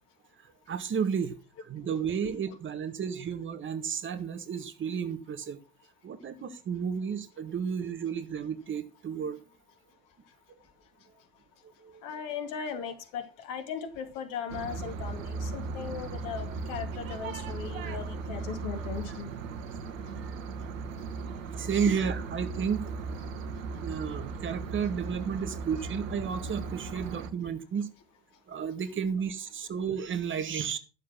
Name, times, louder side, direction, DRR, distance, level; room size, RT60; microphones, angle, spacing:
voice 1, 0.7-5.6 6.0-9.4 11.8-12.0 17.8-18.0 20.2-20.3 21.6-22.9 23.8-27.9 28.5-30.8, right 7 dB, 25° right, 1.6 m, -32 dB
voice 2, 12.0-19.3 21.9-22.0, left 7 dB, 50° left, 2.5 m, -38 dB
sound 1, 14.5-27.3, right 4 dB, 65° right, 1.4 m, -37 dB
13.5 x 7.4 x 5.9 m
figure-of-eight pair, 75°, 43 cm